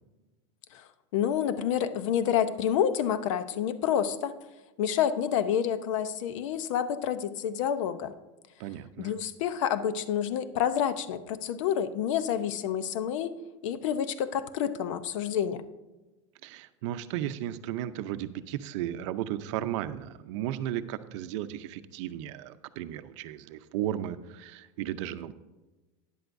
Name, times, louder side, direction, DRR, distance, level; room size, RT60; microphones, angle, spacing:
voice 1, 1.1-4.3 4.8-8.1 9.0-13.3 13.6-15.6, left 9 dB, 80° left, 12 dB, 0.7 m, -28 dB
voice 2, 8.6-9.1 16.4-25.3, right 12 dB, 70° right, 12 dB, 0.6 m, -35 dB
12.5 x 10.0 x 2.6 m, 1.1 s
supercardioid pair, 155°, 16 cm